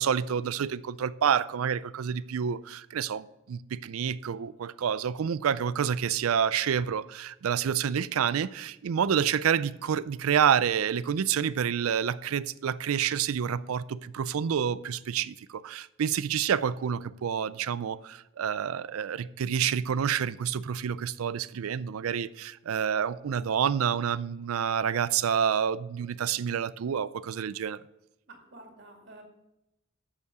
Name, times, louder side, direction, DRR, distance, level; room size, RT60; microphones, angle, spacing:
voice 1, 0.0-27.8, right 8 dB, 90° right, 0.4 m, -28 dB
voice 2, 28.3-29.2, right 2 dB, 55° right, 2.3 m, -50 dB
8.3 x 6.9 x 6.9 m
head